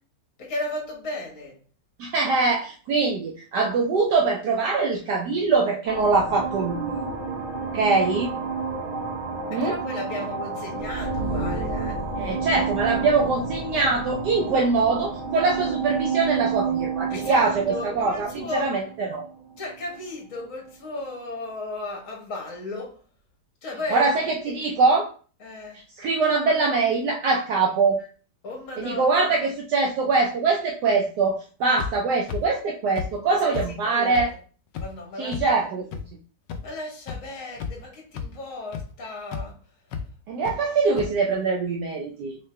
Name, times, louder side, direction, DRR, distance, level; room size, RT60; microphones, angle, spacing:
voice 1, 0.4-1.6 9.5-12.0 17.1-18.7 19.6-23.0 23.6-24.6 25.4-25.8 28.4-29.3 33.3-34.3 34.8-35.5 36.6-39.6, left 2 dB, 45° left, 1.6 m, -35 dB
voice 2, 2.0-7.1 7.7-8.3 9.5-9.8 12.2-19.3 23.9-25.1 26.0-28.0 28.8-34.3 35.2-35.9 40.3-42.4, right 4 dB, 70° right, 1.1 m, -23 dB
sound 1, 5.9-20.0, right 5 dB, 30° right, 1.2 m, -30 dB
sound 2, 31.8-31.9 32.3-32.4 33.0-33.1 33.5-33.7 34.1-34.2 34.7-34.9 35.3-35.4 35.9-36.0 36.5-36.6 37.1-37.2 37.6-37.8 38.1-38.3 38.7-38.8 39.3-39.4 39.9-40.0 40.5-40.6 41.0-41.1, left 7 dB, 75° left, 1.2 m, -31 dB
3.7 x 3.3 x 3.2 m
omnidirectional pair, 2.0 m